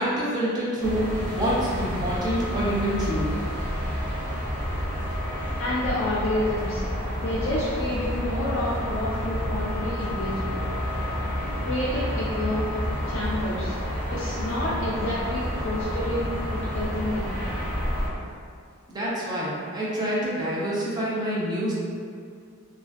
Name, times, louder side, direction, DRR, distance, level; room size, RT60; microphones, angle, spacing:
voice 1, 0.0-3.3 18.9-21.7, right 1 dB, 20° right, -7 dB, 0.5 m, -27 dB
sound 1, 0.8-18.1, equal, 40° right, 1.1 m, -29 dB
voice 2, 5.6-6.8 7.2-10.6 11.6-12.7 13.1-13.8 14.1-17.3, left 1 dB, 60° left, -7 dB, 0.3 m, -29 dB
2.4 x 2.3 x 2.2 m, 2.2 s
head